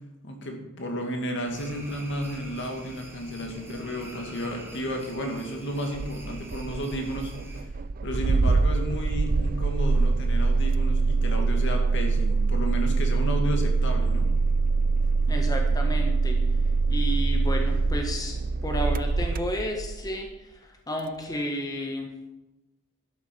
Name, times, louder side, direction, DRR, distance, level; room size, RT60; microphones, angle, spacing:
voice 1, 0.2-7.7 8.0-14.3, equal, 60° left, 3 dB, 2.3 m, -32 dB
sound 1, 1.4-7.6, right 1 dB, 10° right, 2.6 m, -44 dB
Engine starting, 5.9-20.1, right 3 dB, 45° right, 0.5 m, -24 dB
voice 2, 15.3-16.4 16.9-18.3 18.6-20.3 20.6-22.1, equal, 20° left, 2 dB, 1.2 m, -32 dB
12.0 x 8.2 x 6.2 m, 1.0 s
head